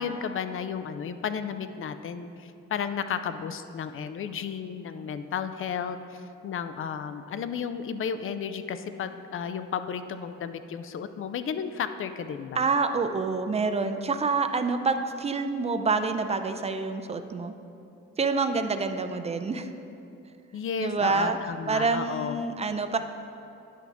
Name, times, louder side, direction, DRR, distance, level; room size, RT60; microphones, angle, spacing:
voice 1, 0.0-12.7 20.5-22.4, left 7 dB, 45° left, 11 dB, 0.5 m, -33 dB
voice 2, 12.6-17.5 18.2-19.7 20.8-21.4 21.7-23.0, right 4 dB, 20° right, 8 dB, 0.4 m, -27 dB
10.0 x 5.8 x 3.5 m, 2.7 s
cardioid pair, 90°, 30 cm